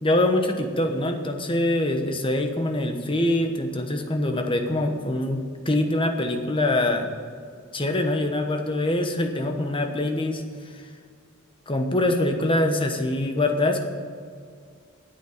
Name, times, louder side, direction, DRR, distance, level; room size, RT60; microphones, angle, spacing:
voice 1, 0.0-7.1 7.7-10.4 10.7-10.8 11.7-13.9, left 1 dB, 25° left, 5 dB, 1.1 m, -24 dB
9.5 x 8.4 x 8.6 m, 2.1 s
head